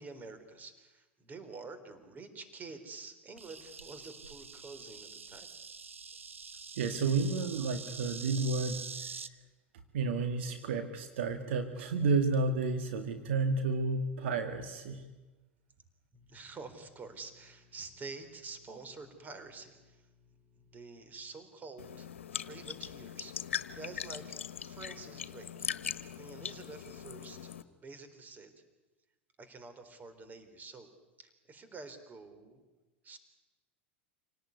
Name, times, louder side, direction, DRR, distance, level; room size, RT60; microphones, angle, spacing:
voice 1, 0.0-5.5 16.1-22.1 22.4-24.2 24.6-25.7 26.1-27.5 27.7-28.5 29.4-30.9 31.2-32.6 33.0-33.2, right 3 dB, 25° right, 10 dB, 4.0 m, -48 dB
Insect, 3.4-9.3, right 5 dB, 90° right, 1.0 m, -45 dB
voice 2, 6.8-9.1 9.9-15.0, right 4 dB, 65° right, 7 dB, 2.1 m, -31 dB
sound 1, 21.8-27.6, left 8 dB, 80° left, 1.4 m, -41 dB
27.5 x 18.5 x 9.6 m, 1.2 s
hypercardioid pair, 90°, 7 cm